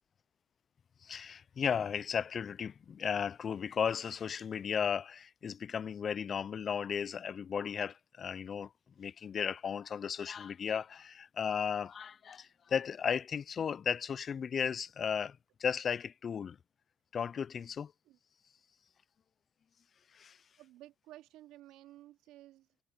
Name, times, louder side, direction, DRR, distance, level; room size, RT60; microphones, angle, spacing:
voice 1, 1.0-8.7 9.0-16.6 17.1-17.9 20.1-20.4, left 7 dB, 40° left, 0.4 m, -35 dB
voice 2, 20.6-22.7, right 15 dB, 85° right, 2.5 m, -54 dB
cardioid pair, 120°, 0 cm